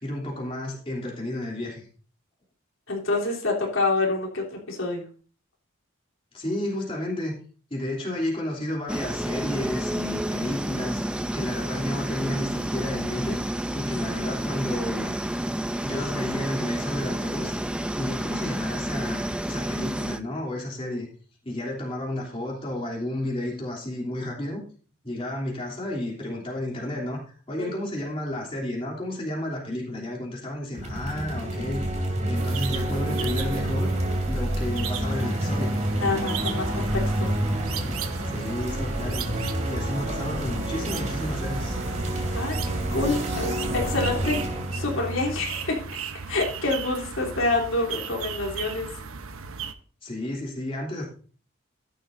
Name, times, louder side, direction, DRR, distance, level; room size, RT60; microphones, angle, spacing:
voice 1, 0.0-1.9 6.3-7.4 7.7-15.2 15.7-17.5 18.0-21.1 21.4-24.6 25.0-31.8 32.3-33.9 34.3-35.8 38.2-39.3 39.7-41.8 50.0-51.1, left 1 dB, 25° left, -3 dB, 3.2 m, -32 dB
voice 2, 2.9-5.0 27.6-27.8 36.0-37.3 42.3-44.4 44.7-45.8 46.3-48.9, left 2 dB, 75° left, -2 dB, 3.5 m, -27 dB
sound 1, 8.9-20.2, right 1 dB, 5° right, 0.5 m, -30 dB
sound 2, 30.7-46.2, right 1 dB, 35° right, 2.8 m, -29 dB
sound 3, 32.4-49.7, right 5 dB, 85° right, 1.0 m, -36 dB
14.5 x 11.5 x 2.7 m, 0.40 s
head